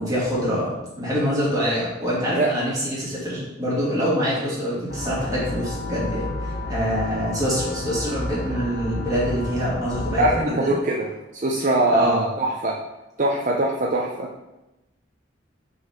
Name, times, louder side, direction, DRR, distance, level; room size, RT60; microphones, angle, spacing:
voice 1, 0.0-10.7 11.9-12.2, equal, 20° right, -7 dB, 2.5 m, -25 dB
sound 1, 4.9-10.4, left 2 dB, 55° left, 0.7 m, -30 dB
voice 2, 10.2-11.1 11.3-12.8 13.2-14.3, right 2 dB, 40° right, -2 dB, 0.6 m, -22 dB
5.8 x 4.1 x 5.7 m, 0.99 s
head